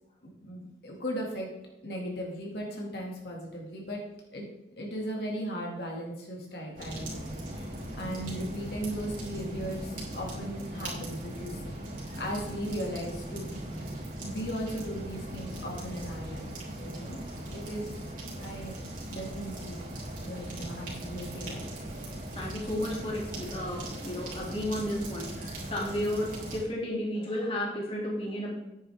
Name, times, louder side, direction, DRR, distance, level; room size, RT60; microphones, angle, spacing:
voice 1, 0.4-1.5 1.8-4.0 4.3-4.5 4.8-7.7 8.0-11.6 12.1-13.6 14.2-16.5 16.8-18.0 18.4-18.8 19.1-19.9 20.2-21.7, equal, 70° left, -1 dB, 2.1 m, -37 dB
sound 1, 6.8-26.6, right 1 dB, 50° right, 3.7 m, -39 dB
voice 2, 22.3-28.5, left 1 dB, 30° left, -3 dB, 2.4 m, -33 dB
10.5 x 9.4 x 3.5 m, 0.93 s
head